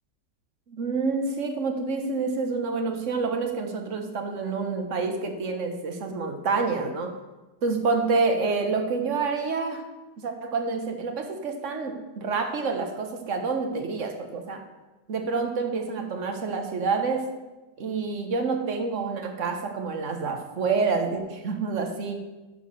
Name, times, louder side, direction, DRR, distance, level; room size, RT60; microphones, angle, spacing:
voice 1, 0.7-7.2 7.6-9.9 10.2-14.6 15.1-17.3 17.8-22.3, right 4 dB, 50° right, 5 dB, 1.4 m, -28 dB
11.5 x 4.8 x 6.9 m, 1.1 s
omnidirectional pair, 1.8 m